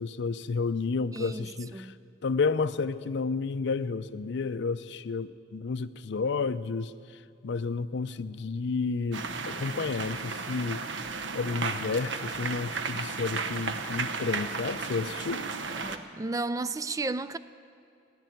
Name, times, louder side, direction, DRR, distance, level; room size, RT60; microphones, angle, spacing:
voice 1, 0.0-1.9 2.2-6.9 7.4-10.8 11.3-15.4, left 4 dB, 70° left, 0.5 m, -31 dB
voice 2, 1.1-1.5 1.7-2.0 15.8-17.4, right 3 dB, 20° right, 0.3 m, -33 dB
sound 1, 9.1-16.0, right 4 dB, 75° right, 0.8 m, -34 dB
15.5 x 10.0 x 9.3 m
head